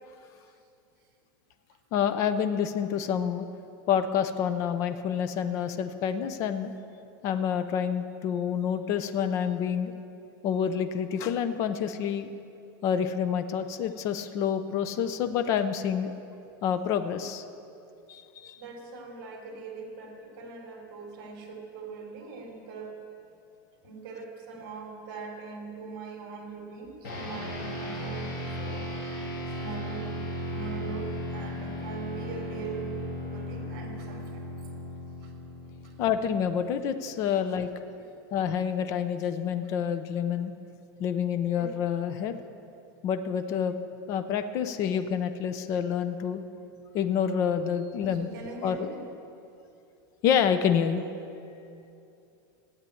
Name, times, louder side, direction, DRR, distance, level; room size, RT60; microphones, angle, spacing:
voice 1, 1.9-3.5 3.9-6.7 7.2-9.9 10.4-12.3 12.8-16.1 16.6-17.4 18.1-18.6 36.0-37.7 38.3-40.5 41.0-42.4 43.0-43.7 44.1-46.4 46.9-48.3 48.6-48.9 50.2-51.0, left 8 dB, 25° left, 9 dB, 0.5 m, -28 dB
voice 2, 18.5-23.0 23.8-29.2 29.6-30.2 30.5-34.5 35.2-35.3 35.8-36.0 41.6-41.8 46.9-47.0 48.0-49.0, right 5 dB, 40° right, 0 dB, 3.6 m, -41 dB
sound 1, 27.0-36.7, left 1 dB, 50° left, 3.1 m, -36 dB
14.5 x 9.7 x 8.4 m, 2.7 s
supercardioid pair, 180°, 12 cm